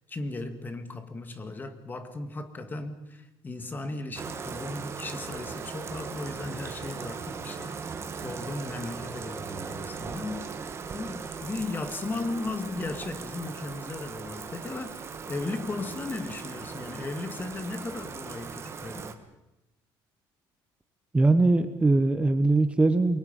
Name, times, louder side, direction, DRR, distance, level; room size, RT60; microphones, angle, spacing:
voice 1, 0.1-7.8 8.2-10.7 10.9-19.2, left 2 dB, 20° left, 8 dB, 2.0 m, -36 dB
Bathtub (filling or washing), 4.2-19.1, right 5 dB, 30° right, 1.6 m, -39 dB
voice 2, 21.1-23.2, right 2 dB, 15° right, 9 dB, 1.0 m, -21 dB
28.5 x 22.5 x 5.4 m, 0.92 s
cardioid pair, 145°, 9 cm